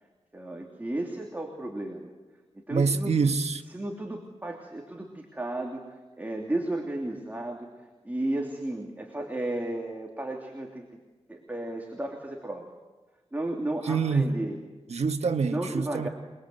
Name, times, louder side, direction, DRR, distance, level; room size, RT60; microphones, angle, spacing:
voice 1, 0.3-2.1 2.5-3.1 3.7-7.7 8.0-10.8 11.3-12.7 13.3-14.6 15.5-16.1, right 1 dB, 15° right, 3.0 m, -33 dB
voice 2, 2.7-3.6 13.9-14.3 14.9-16.1, right 4 dB, 75° right, 1.5 m, -25 dB
28.5 x 21.5 x 8.0 m
wide cardioid pair, 125°, 11 cm